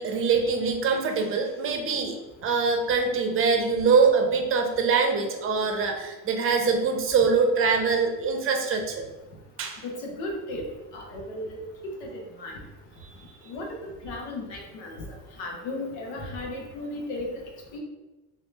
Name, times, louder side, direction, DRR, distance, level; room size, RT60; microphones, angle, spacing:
voice 1, 0.0-2.2 2.4-9.1 9.6-9.8, right 5 dB, 40° right, 4 dB, 0.7 m, -23 dB
voice 2, 9.8-10.6 10.9-11.6 11.8-12.5 13.5-13.7 14.0-15.0 15.4-17.3 17.7-17.8, left 2 dB, 85° left, 0 dB, 1.1 m, -35 dB
3.6 x 3.0 x 3.3 m, 1.1 s
cardioid pair, 125°, 33 cm